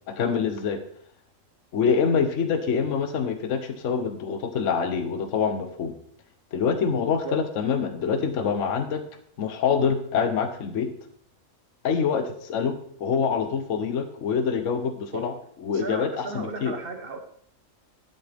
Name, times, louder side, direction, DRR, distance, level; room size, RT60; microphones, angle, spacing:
voice 1, 0.1-0.8 1.7-5.9 6.5-9.0 9.4-10.9 11.8-15.3 15.6-16.7, left 6 dB, 70° left, 7 dB, 1.2 m, -25 dB
voice 2, 15.7-17.2, right 3 dB, 45° right, 6 dB, 1.3 m, -34 dB
11.5 x 8.0 x 3.5 m, 0.62 s
omnidirectional pair, 1.4 m